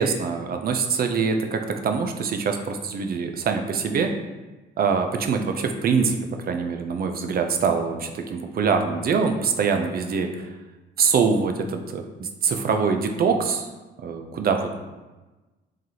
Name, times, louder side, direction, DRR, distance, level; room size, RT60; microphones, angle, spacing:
voice 1, 0.0-4.1 4.8-6.2 6.4-10.5 11.0-13.7 14.0-14.9, right 5 dB, 50° right, 5 dB, 0.4 m, -24 dB
3.8 x 3.2 x 2.8 m, 1.2 s
cardioid pair, 90°, 20 cm